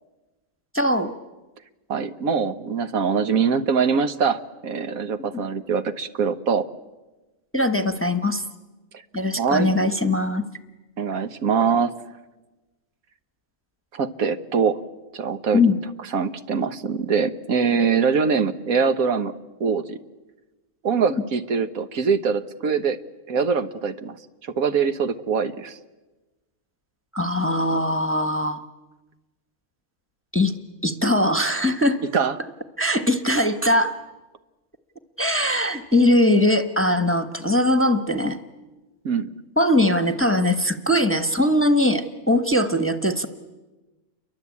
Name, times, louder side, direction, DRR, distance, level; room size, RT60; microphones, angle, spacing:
voice 1, 0.7-1.1 5.3-5.4 7.5-8.4 9.1-10.4 15.5-15.8 27.1-28.6 30.3-30.5 30.8-32.0 32.8-34.0 35.2-38.4 39.6-43.3, left 1 dB, 10° left, 7 dB, 1.2 m, -21 dB
voice 2, 1.9-6.7 9.4-9.7 11.0-11.9 13.9-14.8 15.1-15.6 16.1-19.3 19.6-20.0 20.8-23.0 23.3-24.2 24.4-25.8 32.0-32.4 39.0-39.3, right 6 dB, 75° right, 10 dB, 1.5 m, -23 dB
29.5 x 23.5 x 8.5 m, 1.2 s
omnidirectional pair, 1.5 m